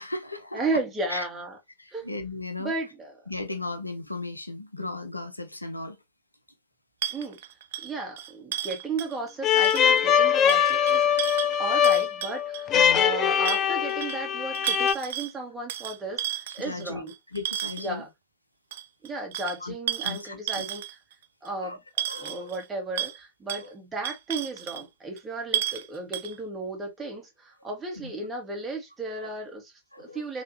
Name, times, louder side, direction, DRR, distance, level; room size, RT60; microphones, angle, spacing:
voice 1, 0.0-0.6 1.1-1.3 1.8-2.7 3.3-6.0 12.7-13.0 16.6-18.0 19.6-19.7 20.0-20.6 21.6-21.8 22.1-22.5 28.0-28.1 29.2-29.3 29.9-30.2, left 2 dB, 85° left, 0.5 m, -36 dB
voice 2, 0.5-1.6 1.9-2.1 2.6-3.2 7.1-7.4 7.8-11.1 11.6-17.1 17.8-18.1 19.0-21.0 21.4-30.4, right 2 dB, 15° right, 1.7 m, -34 dB
sound 1, 7.0-9.3 9.6-10.0 10.5-13.0 13.4-14.2 14.5-15.3 15.7-17.9 18.7-21.1 21.4-21.5 22.0-22.6 23.0-23.2 23.5-23.6 24.0-24.8 25.2-25.3 25.5-25.9 26.1-26.4, right 12 dB, 60° right, 0.3 m, -33 dB
sound 2, 9.4-14.9, left 8 dB, 30° left, 0.4 m, -22 dB
3.2 x 3.0 x 2.9 m
figure-of-eight pair, 90°, 0 cm